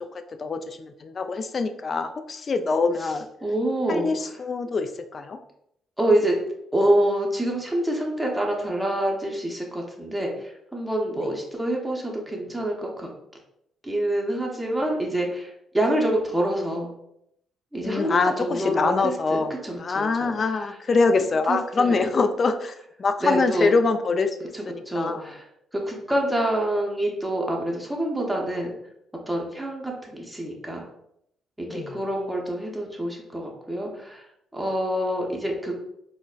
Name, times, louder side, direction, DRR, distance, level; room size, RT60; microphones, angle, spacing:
voice 1, 0.1-3.3 3.9-5.4 11.2-11.3 17.8-19.5 19.8-25.3 31.7-31.9, left 4 dB, 40° left, 8 dB, 0.3 m, -24 dB
voice 2, 3.0-4.1 6.0-6.4 6.7-13.1 13.8-16.9 17.7-20.7 21.5-22.1 23.2-23.8 24.5-25.5 25.7-28.7 29.3-30.9 31.6-34.3 34.5-35.8, right 1 dB, 5° right, -1 dB, 0.6 m, -26 dB
3.9 x 2.1 x 2.3 m, 0.76 s
cardioid pair, 90°, 0 cm